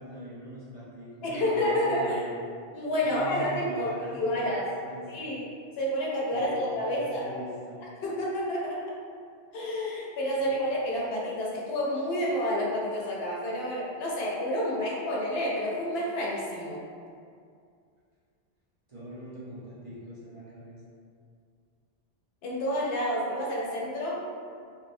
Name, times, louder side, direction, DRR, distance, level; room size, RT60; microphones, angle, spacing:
voice 1, 0.0-2.3 3.0-4.4 4.6-5.3 6.3-7.8 10.4-10.5 18.9-20.9, right 1 dB, 35° right, -11 dB, 0.7 m, -42 dB
voice 2, 1.2-2.2 2.7-4.6 5.1-5.5 5.8-7.2 8.0-8.9 9.5-16.8 22.4-24.2, equal, 80° left, -4 dB, 0.8 m, -29 dB
3.0 x 2.0 x 2.6 m, 2.3 s
omnidirectional pair, 1.0 m